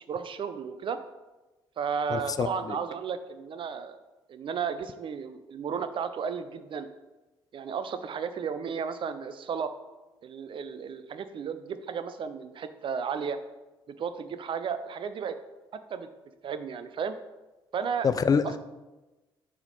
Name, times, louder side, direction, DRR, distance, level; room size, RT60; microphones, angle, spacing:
voice 1, 0.1-1.0 1.8-4.0 4.3-6.9 7.5-9.7 10.2-13.4 13.9-15.4 15.7-16.1 16.4-17.2 17.7-18.1 18.4-18.6, right 6 dB, 45° right, 11 dB, 0.4 m, -33 dB
voice 2, 2.1-2.5 18.0-18.6, left 6 dB, 30° left, 13 dB, 0.4 m, -25 dB
6.9 x 3.5 x 4.1 m, 1.1 s
figure-of-eight pair, 45°, 13 cm